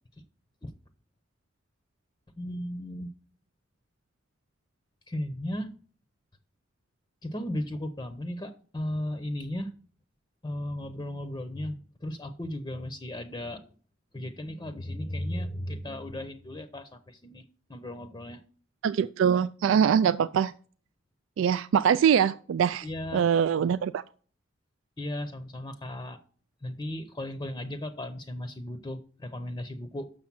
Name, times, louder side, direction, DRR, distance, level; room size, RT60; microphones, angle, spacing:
voice 1, 2.4-3.1 5.1-5.7 7.2-9.7 10.4-13.6 14.1-17.4 17.7-18.4 22.8-23.3 25.0-26.2 26.6-30.1, left 1 dB, 20° left, 8 dB, 0.6 m, -35 dB
voice 2, 18.8-20.5 21.4-22.9 23.1-24.0, right 8 dB, 80° right, 14 dB, 0.3 m, -23 dB
7.1 x 6.4 x 6.0 m, 0.43 s
head